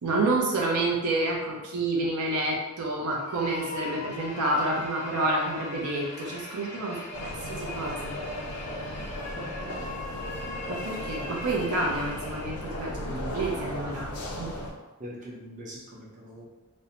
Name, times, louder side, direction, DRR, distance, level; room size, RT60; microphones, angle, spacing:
voice 1, 0.0-8.1 10.7-14.1 14.4-14.6, right 2 dB, 80° right, -1 dB, 0.5 m, -29 dB
sound 1, 3.1-12.9, left 2 dB, 30° left, 0.4 m, -40 dB
sound 2, 7.1-14.7, left 1 dB, 80° left, 0.5 m, -36 dB
voice 2, 9.4-9.9 15.0-16.5, equal, 35° right, -4 dB, 0.6 m, -42 dB
2.5 x 2.1 x 2.8 m, 1.1 s
head